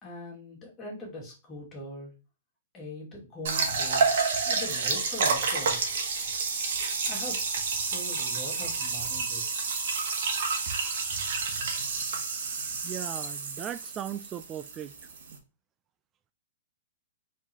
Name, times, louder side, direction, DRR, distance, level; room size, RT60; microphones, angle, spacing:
voice 1, 0.0-2.1 2.7-4.1 4.4-5.9 7.1-7.4 7.7-9.8, left 1 dB, 20° left, 2.3 m, -41 dB
sound 1, 3.5-15.4, right 4 dB, 65° right, 1.5 m, -29 dB
voice 2, 12.8-14.9, right 10 dB, 20° right, 0.3 m, -37 dB
4.5 x 3.9 x 2.9 m
hypercardioid pair, 150°, 0 cm